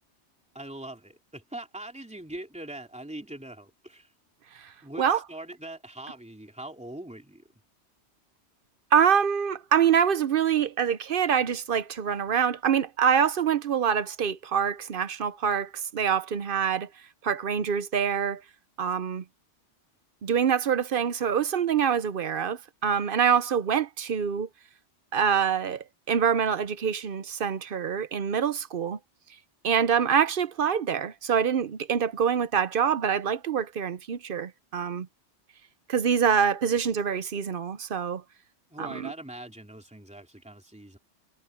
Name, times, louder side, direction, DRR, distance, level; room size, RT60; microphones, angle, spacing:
voice 1, 0.5-4.1 4.8-7.4 38.7-41.0, right 1 dB, 5° right, 3.1 m, -42 dB
voice 2, 8.9-16.9 17.2-18.4 18.8-19.2 20.2-24.5 25.1-29.0 29.6-35.1 35.9-38.2 38.8-39.1, right 7 dB, 55° right, 0.8 m, -25 dB
omnidirectional pair, 1.2 m